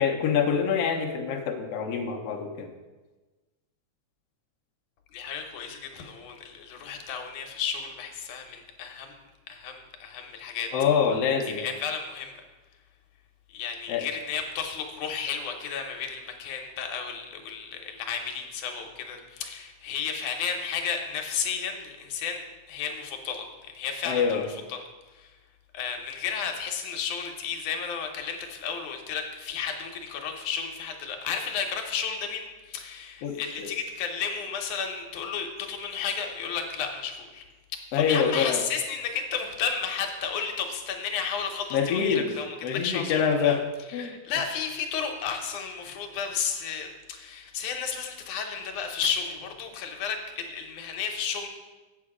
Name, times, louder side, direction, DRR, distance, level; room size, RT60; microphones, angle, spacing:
voice 1, 0.0-2.7 10.7-11.6 13.9-14.1 24.0-24.5 33.2-33.7 37.9-38.6 41.7-42.3 42.6-43.6 43.9-44.2, left 7 dB, 65° left, 2 dB, 1.8 m, -25 dB
voice 2, 5.1-9.2 9.5-10.7 11.5-12.4 13.5-22.4 22.7-24.8 25.1-25.3 25.7-37.4 37.9-43.6 43.9-51.5, left 6 dB, 85° left, 3 dB, 2.4 m, -33 dB
8.2 x 7.3 x 4.9 m, 1.2 s
omnidirectional pair, 3.4 m